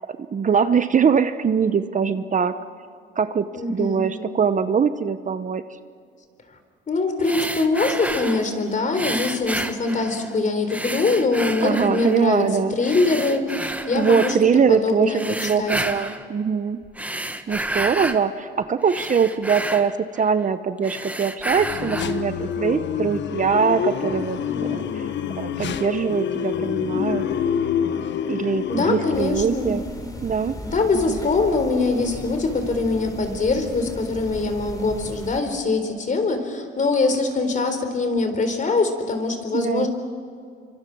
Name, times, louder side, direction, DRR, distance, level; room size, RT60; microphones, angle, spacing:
voice 1, 0.1-2.5 3.2-5.6 11.6-12.7 13.9-16.8 17.5-25.0 25.4-27.3 28.3-29.8 30.2-30.5 31.1-31.2 39.5-39.9, right 6 dB, 40° right, 11 dB, 0.9 m, -22 dB
voice 2, 3.5-4.1 6.9-12.5 12.7-14.4 14.7-15.7 28.7-29.8 30.7-39.9, left 3 dB, 40° left, 7 dB, 4.1 m, -23 dB
sound 1, 7.2-8.5 8.9-10.3 10.7-12.3 12.8-14.4 15.1-16.3 16.8-18.2 18.6-20.5 20.8-22.2, right 1 dB, 5° right, 1.4 m, -30 dB
sound 2, 21.6-29.3, left 8 dB, 65° left, 1.2 m, -26 dB
sound 3, 29.1-35.4, left 1 dB, 20° left, 4.3 m, -37 dB
27.5 x 25.0 x 6.2 m, 2.3 s
cardioid pair, 90°, 20 cm